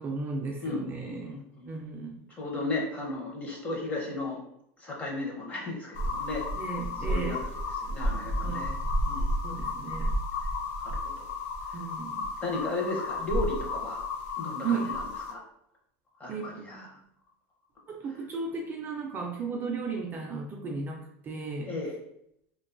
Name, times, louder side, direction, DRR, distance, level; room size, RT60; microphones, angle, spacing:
voice 1, 0.0-1.4 1.7-2.2 6.6-7.4 8.4-8.6 9.4-10.1 11.7-12.2 14.6-14.9 16.3-16.9 17.9-21.7, right 4 dB, 25° right, 0 dB, 0.4 m, -35 dB
voice 2, 0.6-1.7 2.4-4.4 4.8-6.5 7.1-7.4 7.8-8.7 9.1-9.3 9.7-9.8 10.8-11.3 11.7-11.8 12.4-14.0 14.4-15.4 16.2-17.0 21.7-21.9, left 2 dB, 20° left, -2 dB, 0.7 m, -35 dB
sound 1, 5.9-15.3, left 1 dB, 60° left, 0.5 m, -32 dB
2.5 x 2.2 x 2.5 m, 0.74 s
supercardioid pair, 130°, 8 cm